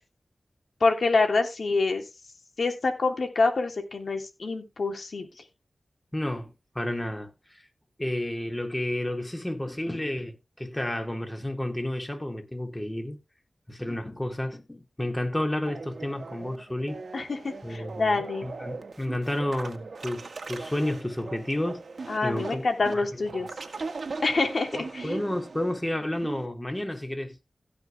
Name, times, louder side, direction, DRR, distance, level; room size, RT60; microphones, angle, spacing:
voice 1, 0.8-2.0 2.6-5.3 17.1-18.5 22.1-23.5 24.2-25.1, left 3 dB, 70° left, 3.1 m, -26 dB
voice 2, 6.1-7.3 8.0-13.2 13.7-17.0 17.6-21.8 22.2-22.6 24.7-27.4, left 1 dB, 20° left, 3.4 m, -31 dB
sound 1, 15.7-26.5, right 4 dB, 75° right, 1.8 m, -40 dB
16.5 x 5.7 x 3.6 m
cardioid pair, 40°, 0 cm